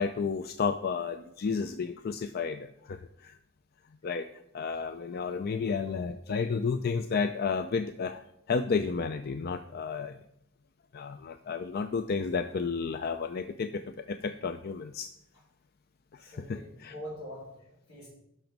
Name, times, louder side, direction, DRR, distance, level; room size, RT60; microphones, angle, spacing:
voice 1, 0.0-3.4 4.0-4.3 4.5-10.2 10.9-13.8 14.1-15.1 16.2-16.9, left 5 dB, 45° left, 10 dB, 0.4 m, -32 dB
voice 2, 16.2-18.1, equal, 75° left, -6 dB, 4.1 m, -44 dB
12.0 x 6.0 x 5.3 m, 0.79 s
head